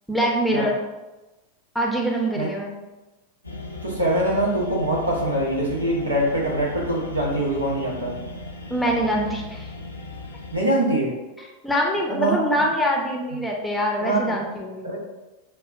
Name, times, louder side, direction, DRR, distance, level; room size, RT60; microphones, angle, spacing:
voice 1, 0.1-0.8 1.7-2.8 8.7-9.7 11.4-14.9, equal, 5° left, -1 dB, 0.6 m, -24 dB
sound 1, 3.4-10.6, left 3 dB, 80° left, 0.5 m, -37 dB
voice 2, 3.8-8.2 10.5-11.1 12.1-12.7 13.3-13.4 14.0-14.3 14.8-15.0, right 1 dB, 80° right, -4 dB, 1.1 m, -23 dB
6.5 x 2.3 x 2.6 m, 1.1 s
figure-of-eight pair, 90°, 0 cm